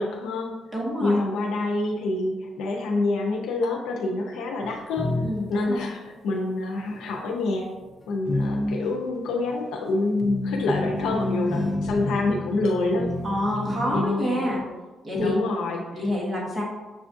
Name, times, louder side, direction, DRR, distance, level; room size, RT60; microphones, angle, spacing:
voice 1, 0.0-0.6 1.0-5.1 5.5-7.7 8.1-13.1 13.9-14.6 15.1-16.0, left 2 dB, 85° left, 0 dB, 0.6 m, -27 dB
voice 2, 0.7-1.2 5.2-5.9 13.2-14.6 15.0-15.4 15.9-16.6, left 1 dB, 20° right, -4 dB, 1.1 m, -27 dB
sound 1, 4.6-5.8 6.8-7.2 7.6-14.0, left 2 dB, 20° left, 0.5 m, -29 dB
6.7 x 2.4 x 2.5 m, 1.2 s
cardioid pair, 90°, 0 cm